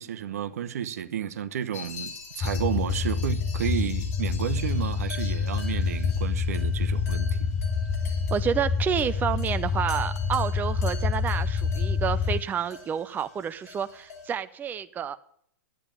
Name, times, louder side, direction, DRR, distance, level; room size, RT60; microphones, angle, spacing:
voice 1, 0.0-7.5, right 9 dB, 70° right, 1.0 m, -32 dB
sound 1, 1.7-14.4, left 5 dB, 75° left, 6.1 m, -45 dB
sound 2, 2.4-12.4, left 5 dB, 30° left, 0.8 m, -27 dB
voice 2, 8.3-15.2, right 8 dB, 20° right, 0.6 m, -29 dB
12.0 x 9.0 x 9.0 m
hypercardioid pair, 105°, 8 cm